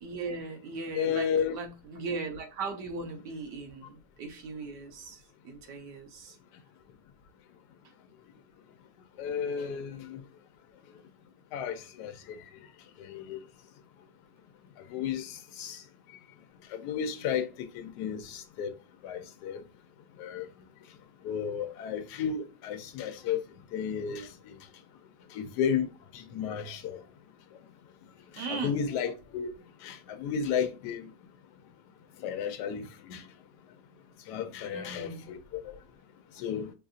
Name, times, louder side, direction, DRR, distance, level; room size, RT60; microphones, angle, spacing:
voice 1, 0.0-6.4 28.4-28.8 34.7-35.3, right 4 dB, 75° right, 1.4 m, -38 dB
voice 2, 0.9-1.5 9.2-10.2 11.5-12.4 13.0-13.4 14.9-15.8 16.7-18.7 19.0-19.6 20.2-20.5 21.2-23.4 23.7-24.6 25.3-27.0 28.3-29.5 29.8-31.1 32.2-33.2 34.3-35.8 36.3-36.7, left 7 dB, 75° left, 1.2 m, -33 dB
5.4 x 2.6 x 2.4 m
omnidirectional pair, 1.9 m